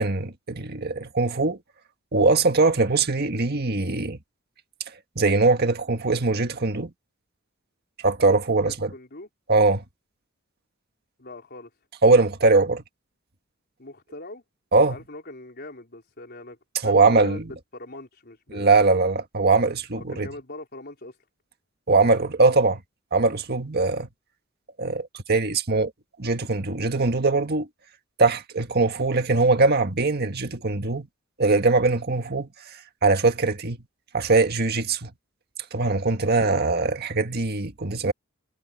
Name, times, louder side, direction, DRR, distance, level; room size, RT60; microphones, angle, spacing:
voice 1, 0.0-1.6 2.1-4.2 5.2-6.9 8.0-8.9 9.5-9.8 12.0-12.8 14.7-15.0 16.8-17.4 18.5-20.3 21.9-22.8 23.1-24.1 24.8-25.9 26.2-27.7 28.2-31.1 31.4-32.5 33.0-33.8 34.1-35.1 35.7-38.1, right 3 dB, 50° right, 1.7 m, -21 dB
voice 2, 8.6-9.3 11.2-11.7 13.8-14.4 14.8-16.6 16.8-18.7 20.0-21.2 36.3-36.7, left 2 dB, 50° left, 4.0 m, -41 dB
head